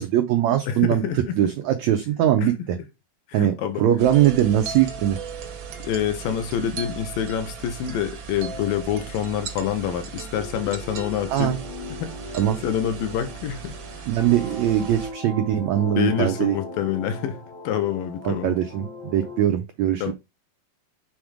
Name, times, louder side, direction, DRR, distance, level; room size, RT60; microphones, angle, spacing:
voice 1, 0.0-2.8 3.3-5.2 11.3-11.6 12.3-12.6 14.1-16.6 18.2-20.1, right 11 dB, 85° right, 1.6 m, -21 dB
voice 2, 0.7-1.4 3.3-3.9 5.8-11.6 11.9-12.1 12.6-13.8 16.0-17.4 17.6-18.6 20.0-20.1, left 9 dB, 75° left, 2.5 m, -27 dB
sound 1, 4.0-15.1, right 6 dB, 65° right, 1.1 m, -37 dB
sound 2, 10.3-19.4, left 2 dB, 55° left, 1.1 m, -39 dB
7.5 x 3.6 x 4.9 m
omnidirectional pair, 4.2 m